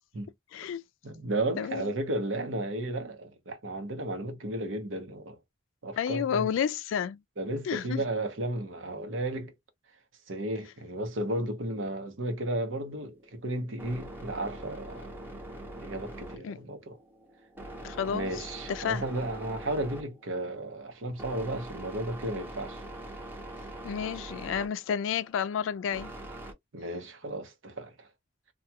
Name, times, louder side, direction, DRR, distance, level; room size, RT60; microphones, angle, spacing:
voice 1, 0.5-0.8 1.6-1.9 6.0-7.2 7.7-8.0 16.4-16.6 17.8-18.3 18.7-19.1 23.8-26.1, left 8 dB, 80° left, 0.3 m, -30 dB
voice 2, 1.0-5.4 5.8-6.5 7.4-9.5 10.3-15.1 15.8-17.0 18.1-22.8 26.7-28.1, right 1 dB, 80° right, 0.8 m, -34 dB
sound 1, 12.9-26.5, right 1 dB, 10° right, 0.8 m, -44 dB
2.3 x 2.2 x 2.8 m
head